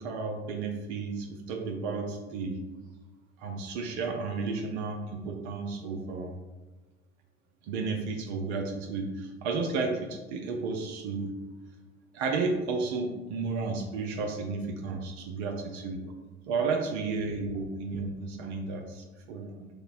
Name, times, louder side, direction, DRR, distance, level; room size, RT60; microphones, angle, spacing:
voice 1, 0.0-2.6 3.4-6.3 7.6-11.3 12.1-16.0 16.5-19.7, right 4 dB, 65° right, 3 dB, 0.7 m, -32 dB
6.3 x 2.2 x 2.6 m, 1.1 s
hypercardioid pair, 70°, 36 cm